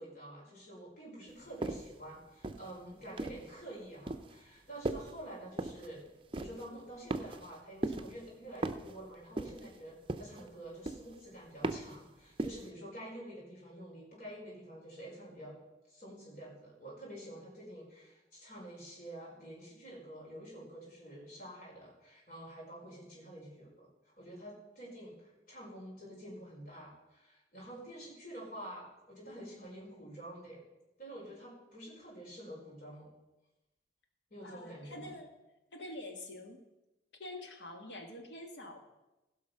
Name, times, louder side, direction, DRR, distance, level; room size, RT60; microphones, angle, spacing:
voice 1, 0.0-6.0 6.3-15.5 15.9-23.9 24.2-30.6 31.0-33.1 34.3-35.1, right 1 dB, 55° left, -5 dB, 4.9 m, -48 dB
sound 1, 1.6-1.9 2.4-3.5 4.1-4.3 4.8-5.2 5.6-5.9 6.3-6.7 7.1-7.6 7.8-8.2 8.6-9.0 9.4-9.7 10.1-10.5 10.9-11.2 11.6-12.0 12.4-12.7, right 2 dB, 30° right, 0.6 m, -37 dB
voice 2, 34.4-35.3 35.7-36.6 37.2-38.9, left 1 dB, 85° left, 4 dB, 1.7 m, -46 dB
16.0 x 5.8 x 5.7 m, 1.0 s
head